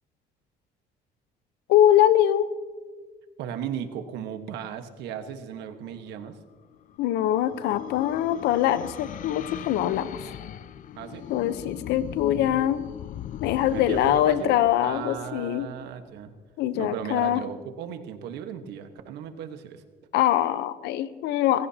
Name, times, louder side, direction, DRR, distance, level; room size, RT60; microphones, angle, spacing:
voice 1, 1.7-2.5 7.0-10.3 11.3-12.8 13.4-15.7 16.6-17.4 20.1-21.7, left 11 dB, 85° left, 13 dB, 0.8 m, -23 dB
voice 2, 3.4-6.4 11.0-11.3 13.7-14.5 14.8-16.3 16.7-19.8, right 8 dB, 85° right, 8 dB, 1.4 m, -36 dB
sound 1, 6.4-16.0, left 11 dB, 50° left, 0.5 m, -39 dB
29.0 x 16.5 x 2.9 m, 1.5 s
cardioid pair, 110°, 17 cm